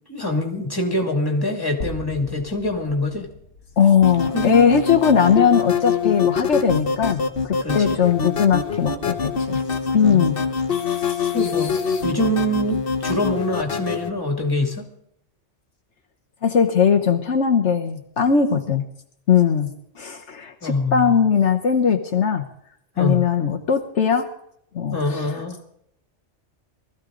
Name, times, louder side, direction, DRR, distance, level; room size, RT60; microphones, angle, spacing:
voice 1, 0.1-3.3 4.3-4.6 7.6-8.0 10.0-10.4 11.3-11.7 12.0-14.9 20.6-21.2 23.0-23.2 24.9-25.6, left 1 dB, 20° left, 2 dB, 2.6 m, -24 dB
sound 1, 1.8-6.0, left 2 dB, 90° left, 2.0 m, -39 dB
voice 2, 3.8-9.6 9.9-10.4 16.4-18.9 19.3-22.5 23.0-24.3 24.7-25.4, left 7 dB, 70° left, 4 dB, 1.3 m, -19 dB
sound 2, 4.0-14.1, left 6 dB, 50° left, 1.3 m, -24 dB
20.0 x 14.5 x 3.8 m, 0.72 s
omnidirectional pair, 1.2 m